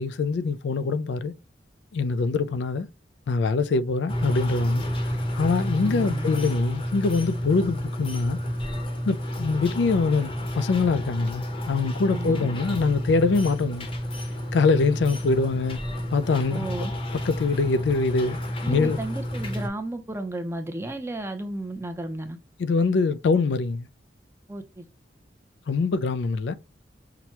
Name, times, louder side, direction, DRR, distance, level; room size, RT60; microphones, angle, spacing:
voice 1, 0.0-1.3 1.9-2.9 3.3-4.8 5.3-8.4 9.1-10.3 10.6-13.9 14.5-15.8 16.1-16.7 17.3-18.4 18.7-19.0 22.6-23.9 25.7-26.5, left 4 dB, 75° left, 0.4 m, -24 dB
sound 1, 4.1-19.7, equal, 30° left, 0.8 m, -30 dB
voice 2, 5.8-6.3 12.1-12.5 16.5-16.9 18.6-22.4 24.5-24.9, right 1 dB, 15° right, 0.6 m, -33 dB
5.8 x 2.2 x 2.9 m
head